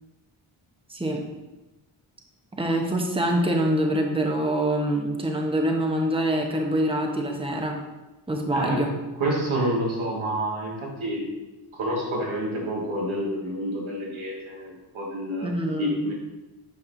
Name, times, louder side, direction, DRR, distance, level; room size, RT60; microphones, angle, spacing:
voice 1, 0.9-1.2 2.6-7.8 8.3-8.9 15.4-16.1, right 1 dB, 10° right, 1 dB, 1.0 m, -25 dB
voice 2, 8.5-8.9 9.2-11.3 11.7-16.1, right 1 dB, 70° right, -2 dB, 1.9 m, -28 dB
8.4 x 5.4 x 2.7 m, 1.1 s
cardioid pair, 70°, 49 cm